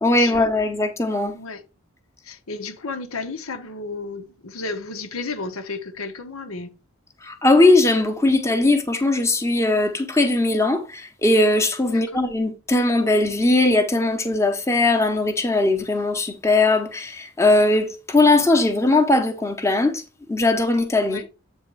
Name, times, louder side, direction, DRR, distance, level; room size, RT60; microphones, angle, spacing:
voice 1, 0.0-1.4 7.2-20.0 20.3-21.2, left 2 dB, 15° left, 0.8 m, -19 dB
voice 2, 2.2-6.7 11.9-12.2 21.0-21.3, left 3 dB, 90° left, 1.0 m, -33 dB
8.0 x 3.6 x 4.7 m
head